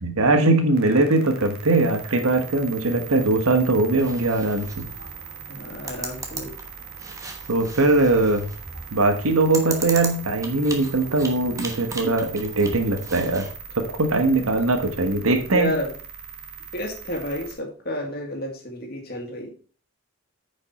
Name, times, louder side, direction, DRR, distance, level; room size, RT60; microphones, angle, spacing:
voice 1, 0.0-4.9 7.5-8.5 8.9-13.5 13.8-15.7, right 2 dB, 75° right, 6 dB, 1.3 m, -21 dB
sound 1, 0.7-17.5, right 7 dB, 45° right, 1.7 m, -40 dB
sound 2, 4.0-13.6, right 3 dB, 15° right, 1.1 m, -38 dB
voice 2, 5.5-6.6 15.5-15.9 16.7-19.5, equal, 45° left, 2 dB, 2.1 m, -30 dB
9.7 x 5.3 x 4.2 m, 0.39 s
head